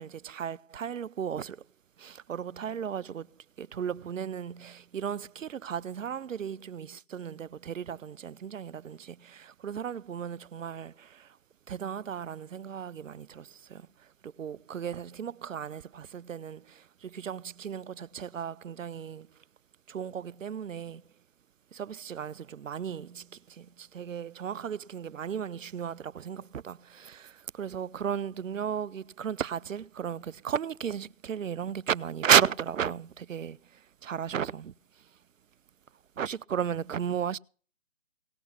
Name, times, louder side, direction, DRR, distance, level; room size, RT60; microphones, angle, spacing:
voice 1, 0.0-1.6 2.0-3.3 3.6-11.3 11.7-13.9 14.2-19.3 19.9-21.0 21.7-33.6 34.0-34.7 36.2-37.4, right 8 dB, 75° right, 0.5 m, -34 dB
18.0 x 6.1 x 8.3 m
figure-of-eight pair, 155°, 39 cm